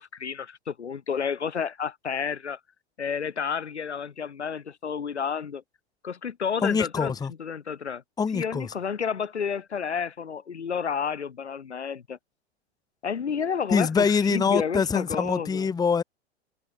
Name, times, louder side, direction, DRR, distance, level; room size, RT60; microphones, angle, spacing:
voice 1, 0.0-2.6 3.0-5.6 6.0-7.1 7.4-8.0 8.3-12.2 13.0-15.7, left 6 dB, 80° left, 2.9 m, -30 dB
voice 2, 6.6-7.3 8.2-8.7 13.7-16.0, left 5 dB, 10° left, 1.3 m, -24 dB
figure-of-eight pair, 100°, 33 cm